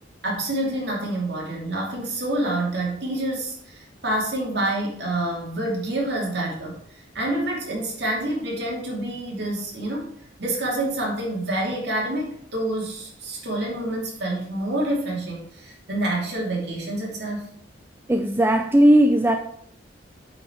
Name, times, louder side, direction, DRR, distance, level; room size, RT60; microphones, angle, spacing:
voice 1, 0.2-10.1 10.4-17.5, right 1 dB, 60° right, -2 dB, 2.8 m, -27 dB
voice 2, 18.1-19.4, right 1 dB, 10° right, 5 dB, 0.4 m, -17 dB
8.6 x 5.1 x 4.9 m, 0.66 s
head